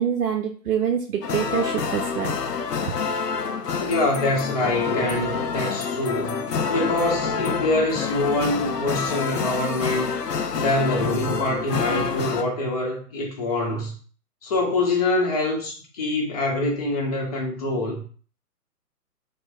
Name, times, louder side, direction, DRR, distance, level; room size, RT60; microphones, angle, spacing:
voice 1, 0.0-2.3, right 8 dB, 65° right, 1 dB, 0.6 m, -25 dB
sound 1, 1.2-12.4, left 5 dB, 85° left, 0.6 m, -27 dB
voice 2, 3.8-6.4 6.7-10.1 10.6-14.0 14.4-18.0, left 2 dB, 25° left, -1 dB, 0.7 m, -25 dB
4.4 x 2.1 x 2.5 m, 0.42 s
figure-of-eight pair, 140°, 47 cm